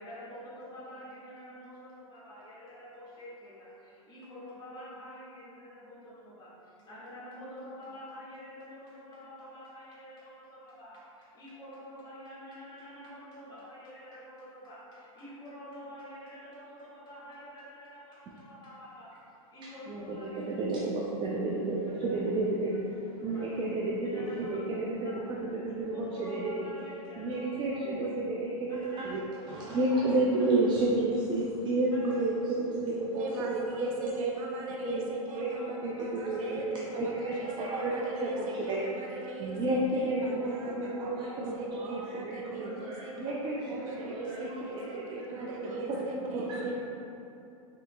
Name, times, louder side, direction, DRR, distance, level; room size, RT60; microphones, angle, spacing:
voice 1, 0.0-19.1 19.5-20.5 22.1-22.2 22.9-23.4 24.0-24.6 25.0-25.2 25.8-27.8 28.7-29.1 29.4-30.2 31.9-32.2 35.3-35.6 36.1-36.4 36.8-37.1 37.4-37.6 38.1-38.2 38.5-38.7 39.1-39.6 40.0-40.7 42.6-42.7 43.3-43.4 44.2-44.4 45.4-45.5 45.9-46.0, equal, 25° left, -8 dB, 1.5 m, -48 dB
voice 2, 19.9-22.7 23.2-25.1 25.4-26.6 27.2-33.2 33.5-33.6 34.0-34.3 34.8-35.0 35.4-39.1 39.4-46.8, right 2 dB, 25° right, -4 dB, 0.4 m, -31 dB
voice 3, 33.1-46.8, right 2 dB, 65° right, -2 dB, 0.7 m, -40 dB
5.9 x 2.8 x 2.2 m, 2.8 s
hypercardioid pair, 120°, 18 cm